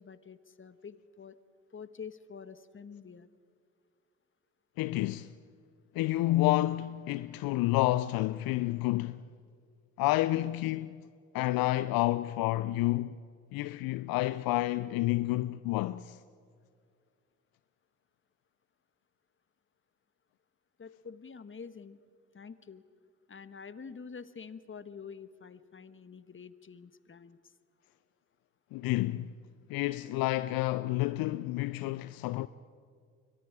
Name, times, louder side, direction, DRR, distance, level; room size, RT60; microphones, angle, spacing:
voice 1, 0.0-1.4 1.7-3.3 20.8-22.0 22.3-22.8 23.3-27.5, left 6 dB, 30° left, 1.4 m, -47 dB
voice 2, 4.8-5.3 5.9-9.2 10.0-11.1 11.3-13.2 13.5-16.2 28.7-29.3 29.7-32.5, left 17 dB, 70° left, 0.6 m, -29 dB
29.0 x 23.5 x 4.9 m
hypercardioid pair, 40°, 38 cm